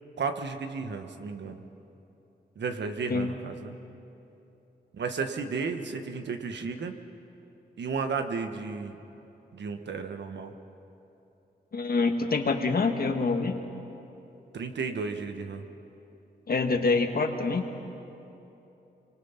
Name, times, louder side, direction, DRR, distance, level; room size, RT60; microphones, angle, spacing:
voice 1, 0.2-1.6 2.6-3.7 4.9-7.0 7.8-9.0 9.5-10.5 14.5-15.7, right 5 dB, 80° right, 7 dB, 1.4 m, -33 dB
voice 2, 11.7-13.6 16.5-17.7, left 3 dB, 55° left, 5 dB, 1.8 m, -26 dB
26.0 x 24.0 x 5.9 m, 3.0 s
cardioid pair, 75°, 18 cm